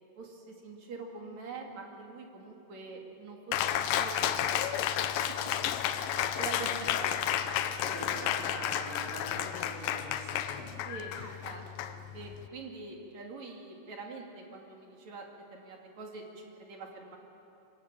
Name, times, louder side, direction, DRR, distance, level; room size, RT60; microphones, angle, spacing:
voice 1, 0.2-4.7 6.4-7.6 8.0-8.1 10.8-11.2 11.4-17.2, right 3 dB, 45° right, 1 dB, 3.2 m, -45 dB
Cheering, 3.5-12.5, left 10 dB, 75° left, 2.1 m, -32 dB
voice 2, 6.1-6.6 7.8-10.7 11.1-11.4, right 1 dB, 65° right, -4 dB, 6.8 m, -44 dB
25.5 x 19.0 x 8.9 m, 3.0 s
omnidirectional pair, 4.8 m